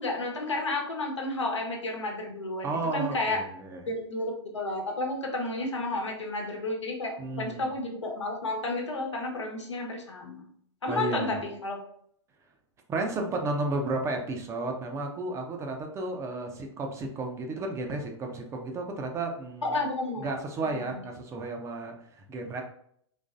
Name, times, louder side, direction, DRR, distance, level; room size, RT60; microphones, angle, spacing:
voice 1, 0.0-3.4 3.9-10.5 10.8-11.8 19.6-20.3 20.6-21.0, left 2 dB, 85° left, 1 dB, 1.0 m, -32 dB
voice 2, 2.6-3.8 7.2-7.7 10.9-11.4 12.9-19.8 20.2-22.6, right 2 dB, 20° right, 2 dB, 0.6 m, -33 dB
4.0 x 3.0 x 2.5 m, 0.67 s
hypercardioid pair, 110°, 15 cm